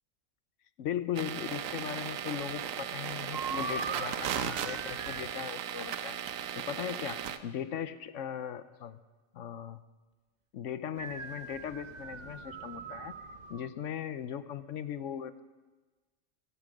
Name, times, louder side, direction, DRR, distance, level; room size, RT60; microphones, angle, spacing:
voice 1, 0.8-6.2 6.5-9.0 9.3-9.8 10.5-13.1 13.5-15.4, left 9 dB, 70° left, 13 dB, 1.0 m, -38 dB
sound 1, 1.1-7.4, right 8 dB, 80° right, 1.2 m, -36 dB
sound 2, 3.3-5.3 11.0-13.7, right 4 dB, 40° right, 0.8 m, -41 dB
16.5 x 15.0 x 5.0 m, 1.2 s
omnidirectional pair, 1.4 m